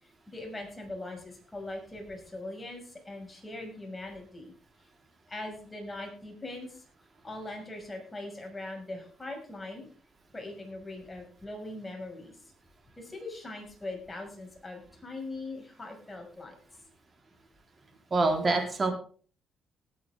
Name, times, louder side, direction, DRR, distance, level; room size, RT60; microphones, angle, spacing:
voice 1, 0.0-4.5 4.8-4.9 5.3-6.8 7.2-9.9 10.3-12.4 13.0-16.6, left 2 dB, 20° left, 1 dB, 5.8 m, -41 dB
voice 2, 18.1-18.9, right 3 dB, 35° right, 3 dB, 3.8 m, -25 dB
19.0 x 9.4 x 3.6 m, 0.41 s
cardioid pair, 90°, 0 cm